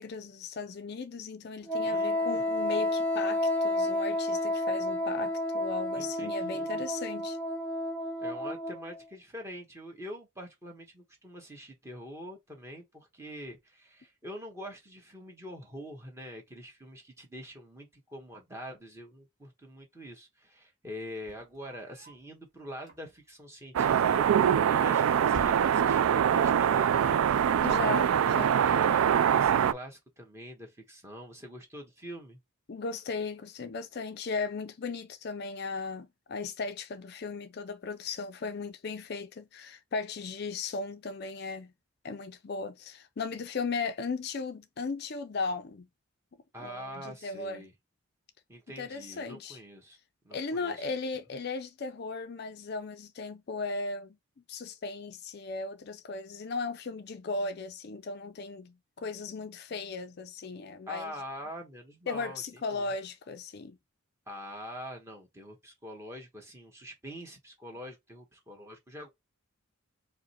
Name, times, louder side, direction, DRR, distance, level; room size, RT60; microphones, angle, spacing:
voice 1, 0.0-7.4 27.6-28.6 32.7-41.7 42.0-45.9 46.6-47.7 48.8-49.6 50.3-54.2 54.5-61.1 62.1-63.8, left 4 dB, 45° left, 0.4 m, -37 dB
Wind instrument woodwind instrument, 1.7-9.0, left 1 dB, 5° left, 0.7 m, -30 dB
voice 2, 1.8-2.5 5.9-6.9 8.2-27.2 28.7-32.4 46.5-47.7 48.5-50.0 50.2-50.8 60.9-62.9 64.3-69.1, equal, 10° right, 1.2 m, -44 dB
sound 1, 21.2-22.3 22.8-23.4 24.4-24.9 25.2-26.2, equal, 35° right, 1.6 m, -47 dB
sound 2, 23.7-29.7, right 8 dB, 75° right, 0.3 m, -24 dB
4.7 x 2.1 x 4.2 m
head